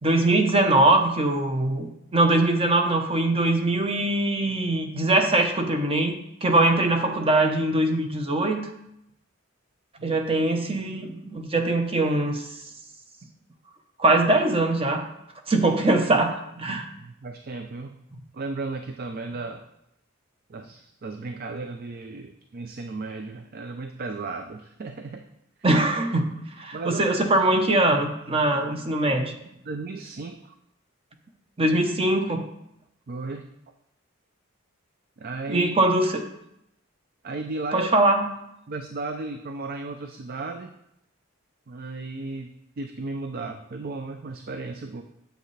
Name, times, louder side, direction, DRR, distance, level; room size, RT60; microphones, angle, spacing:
voice 1, 0.0-6.1 6.4-8.7 10.0-12.5 14.0-15.1 15.5-16.9 25.6-26.3 26.6-29.3 31.6-32.4 35.5-36.3 37.7-38.3, right 2 dB, 25° right, 5 dB, 0.8 m, -22 dB
voice 2, 16.7-18.0 18.3-19.6 20.5-25.2 26.7-27.0 29.6-30.5 33.1-33.5 35.2-35.7 37.2-37.9 38.7-40.7 41.7-42.5 42.8-45.0, right 3 dB, 45° right, 6 dB, 0.4 m, -35 dB
8.0 x 7.7 x 3.3 m, 0.81 s
head